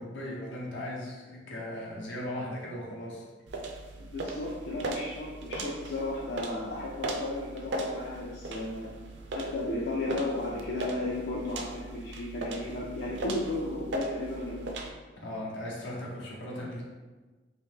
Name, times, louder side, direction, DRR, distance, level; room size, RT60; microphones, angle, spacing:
voice 1, 0.0-3.2 15.2-16.8, left 1 dB, 85° left, -3 dB, 0.9 m, -38 dB
sound 1, 3.5-14.9, right 2 dB, 70° right, 0.4 m, -38 dB
voice 2, 4.0-8.9 9.3-14.7, left 2 dB, 65° left, -4 dB, 0.4 m, -34 dB
3.0 x 2.8 x 3.4 m, 1.3 s
head